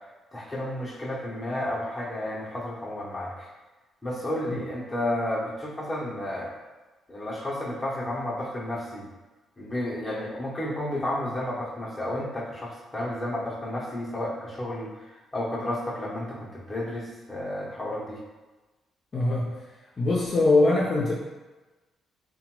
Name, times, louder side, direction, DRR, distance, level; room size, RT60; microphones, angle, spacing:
voice 1, 0.3-3.5 4.0-6.5 7.1-9.1 9.6-18.2, left 1 dB, 15° left, -6 dB, 0.8 m, -32 dB
voice 2, 19.1-19.5 20.0-21.1, left 2 dB, 40° left, -5 dB, 0.5 m, -22 dB
2.8 x 2.2 x 2.9 m, 1.2 s
cardioid pair, 90°, 0 cm